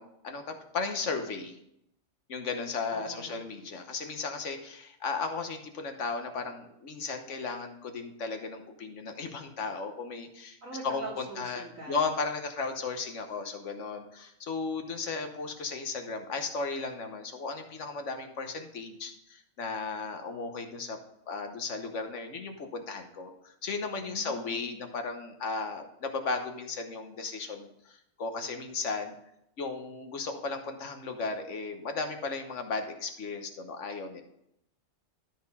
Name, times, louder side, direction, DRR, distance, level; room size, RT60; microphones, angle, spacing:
voice 1, 0.0-1.6 2.3-10.6 10.8-21.0 21.3-29.1 29.6-34.2, left 4 dB, 65° left, 6 dB, 1.4 m, -35 dB
voice 2, 2.9-3.4 10.6-12.1 24.0-24.8, right 3 dB, 85° right, -4 dB, 3.0 m, -43 dB
12.5 x 4.3 x 5.4 m, 0.78 s
omnidirectional pair, 1.3 m